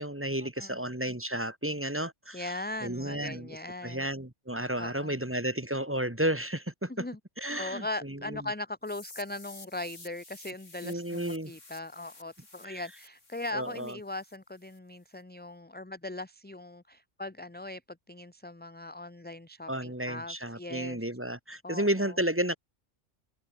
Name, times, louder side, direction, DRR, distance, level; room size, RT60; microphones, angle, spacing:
voice 1, 0.0-2.5 2.8-3.6 3.8-7.1 7.4-8.4 10.8-11.5 12.6-12.8 13.5-14.0 19.7-22.6, right 1 dB, 10° right, 1.7 m, -32 dB
voice 2, 2.3-4.0 4.8-5.1 6.9-7.2 7.6-21.0 21.6-22.2, left 2 dB, 10° left, 0.7 m, -39 dB
sound 1, 8.8-14.8, left 3 dB, 85° left, 4.5 m, -52 dB
omnidirectional pair, 1.2 m